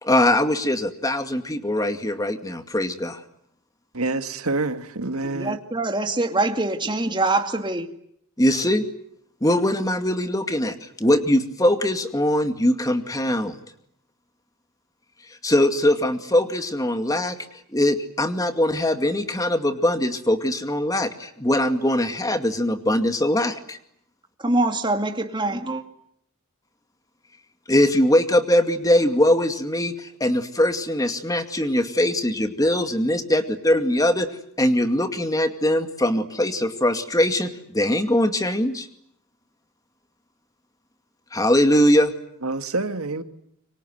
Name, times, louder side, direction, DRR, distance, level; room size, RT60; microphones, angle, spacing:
voice 1, 0.0-3.2 8.4-8.8 9.4-13.6 15.4-17.4 17.7-23.8 27.7-34.3 34.6-38.9 41.3-42.1, left 1 dB, 15° left, 2.3 m, -21 dB
voice 2, 3.9-5.6 42.4-43.2, right 3 dB, 80° right, 2.0 m, -27 dB
voice 3, 5.3-7.9 24.4-25.8, right 2 dB, 20° right, 2.4 m, -24 dB
29.5 x 25.0 x 7.9 m
head